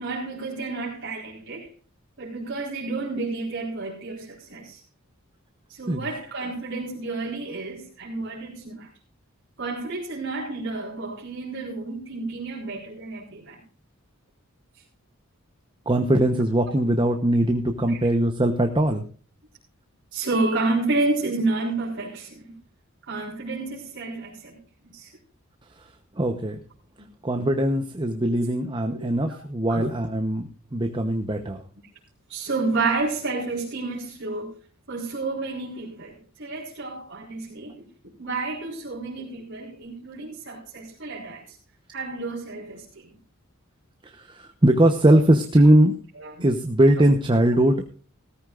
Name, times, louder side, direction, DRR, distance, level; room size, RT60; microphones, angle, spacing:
voice 1, 0.0-1.7 2.2-4.8 5.7-8.9 9.6-13.6 17.9-18.1 20.1-22.5 23.1-24.6 24.9-25.1 28.9-29.4 29.7-29.9 32.3-34.5 34.9-41.4 41.9-43.1 46.2-46.5, right 3 dB, 60° right, -5 dB, 4.3 m, -30 dB
voice 2, 15.9-19.0 26.1-26.6 27.2-31.6 44.0-45.9 46.4-47.9, right 1 dB, 25° right, 5 dB, 1.0 m, -21 dB
17.5 x 14.0 x 2.5 m, 0.40 s
head